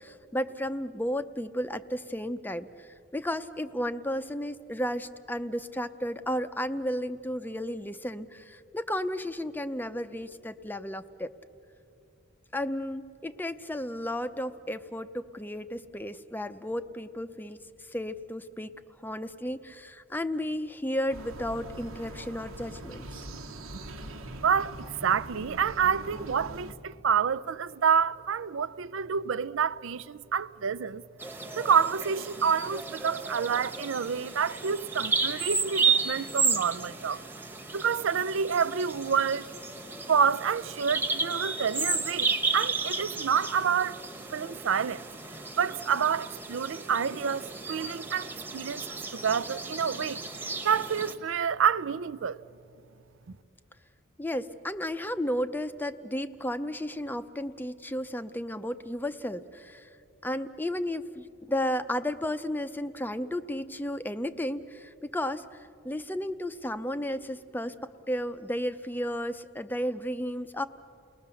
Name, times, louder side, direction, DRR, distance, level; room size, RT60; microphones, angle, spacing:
voice 1, 0.0-11.3 12.5-18.7 19.0-23.0 54.2-59.9 60.2-70.6, left 1 dB, 10° left, 0.6 m, -33 dB
sound 1, 21.1-26.7, right 1 dB, 80° right, 1.4 m, -42 dB
voice 2, 24.4-24.8 25.0-31.0 31.6-37.2 37.7-39.5 40.1-44.0 44.3-45.0 45.6-50.3 50.6-52.4, right 7 dB, 60° right, 0.5 m, -28 dB
Bird vocalization bird call bird song, 31.2-51.1, right 4 dB, 10° right, 1.2 m, -33 dB
29.5 x 20.0 x 6.9 m
head